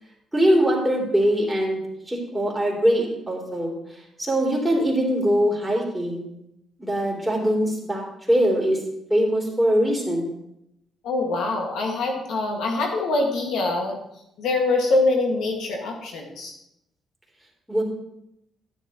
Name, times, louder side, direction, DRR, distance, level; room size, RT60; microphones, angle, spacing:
voice 1, 0.3-1.8 2.1-3.7 4.2-6.3 6.8-8.0 8.3-8.8 9.1-10.3 17.7-17.8, equal, 5° right, -2 dB, 3.2 m, -22 dB
voice 2, 11.0-14.0 14.4-16.5, left 2 dB, 80° left, 1 dB, 1.8 m, -24 dB
10.5 x 9.8 x 3.0 m, 0.79 s
cardioid pair, 90°, 0 cm